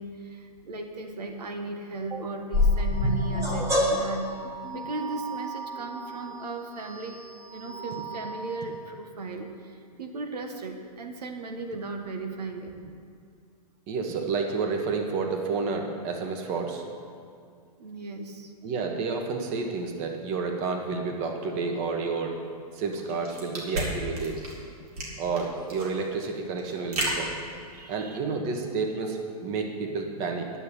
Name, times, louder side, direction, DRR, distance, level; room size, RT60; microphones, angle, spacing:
voice 1, 0.0-4.3 4.7-7.2 7.5-12.7 17.8-18.5 27.7-28.2, right 2 dB, 90° right, 5 dB, 1.4 m, -36 dB
sound 1, 2.5-8.7, left 1 dB, 15° right, 1.4 m, -29 dB
voice 2, 13.9-16.9 18.6-22.4 22.7-24.4 25.2-27.3 27.9-30.5, right 4 dB, 35° right, 3 dB, 1.4 m, -30 dB
sound 2, 22.9-28.1, right 1 dB, 70° right, 3.5 m, -34 dB
11.0 x 6.7 x 9.1 m, 2.3 s
hypercardioid pair, 145°, 20 cm